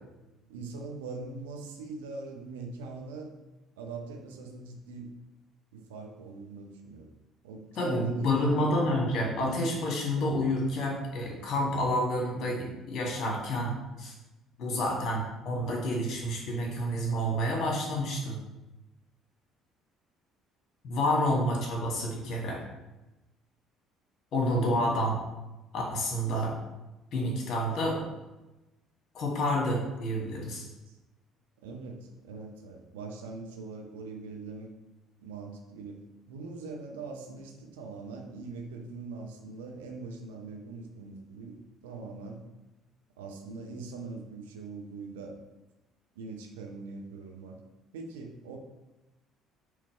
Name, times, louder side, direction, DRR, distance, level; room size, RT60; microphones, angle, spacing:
voice 1, 0.5-3.3 3.8-5.1 5.7-7.1 7.4-9.0 9.3-9.5 11.5-11.6 14.9-15.1 21.1-21.3 21.7-22.0 24.6-24.9 30.9-31.0 31.6-34.7 35.2-36.0 36.3-42.4 43.2-45.4 46.2-47.6 47.9-48.6, right 3 dB, 70° right, 2 dB, 0.7 m, -42 dB
voice 2, 7.8-14.1 14.6-18.4 20.8-22.6 24.3-25.2 25.7-26.5 27.1-28.1 29.1-30.6, left 1 dB, 45° left, -2 dB, 1.9 m, -29 dB
6.5 x 3.3 x 4.5 m, 1.0 s
figure-of-eight pair, 50°, 0 cm